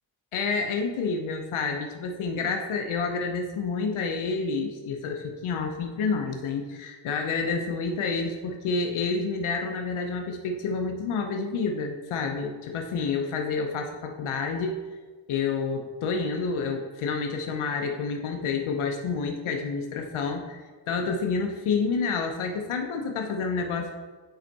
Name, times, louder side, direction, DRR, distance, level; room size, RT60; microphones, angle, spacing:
voice 1, 0.3-14.8 15.3-23.9, left 4 dB, 90° left, 3 dB, 0.8 m, -29 dB
9.3 x 4.4 x 4.0 m, 1.4 s
cardioid pair, 80°, 48 cm